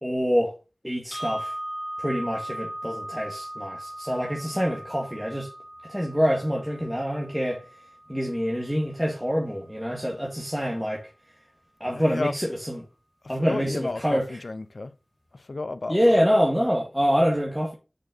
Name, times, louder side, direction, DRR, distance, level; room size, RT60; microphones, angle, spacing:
voice 1, 0.0-0.5 0.8-1.5 2.0-5.5 5.8-7.6 8.1-11.1 11.8-12.8 13.3-14.4 15.9-17.7, equal, ahead, 2.1 m, -26 dB
sound 1, 1.1-9.1, right 1 dB, 35° left, 2.6 m, -38 dB
voice 2, 11.9-12.4 13.2-14.9 15.3-16.2, left 3 dB, 75° left, 0.7 m, -32 dB
6.6 x 6.1 x 5.3 m
wide cardioid pair, 65°, 0 cm